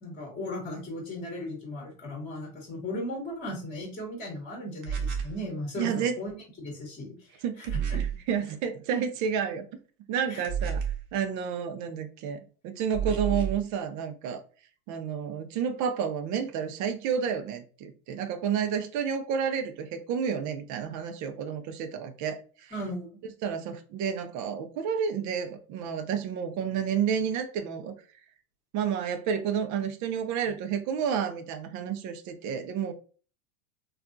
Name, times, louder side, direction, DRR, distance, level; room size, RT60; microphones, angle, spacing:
voice 1, 0.0-8.0 10.3-10.4 22.7-23.1, left 1 dB, 20° left, 0 dB, 1.1 m, -37 dB
sound 1, 4.8-5.4 7.6-8.2 10.4-11.1 12.9-13.6, right 7 dB, 60° right, 0.9 m, -30 dB
voice 2, 5.8-6.2 7.4-7.7 8.3-9.7 10.1-10.8 11.1-12.4 12.6-14.4 14.9-22.7 23.4-27.9 28.7-32.9, right 7 dB, 40° right, 8 dB, 0.6 m, -30 dB
3.4 x 2.3 x 2.5 m, 0.39 s
hypercardioid pair, 105°, 45 cm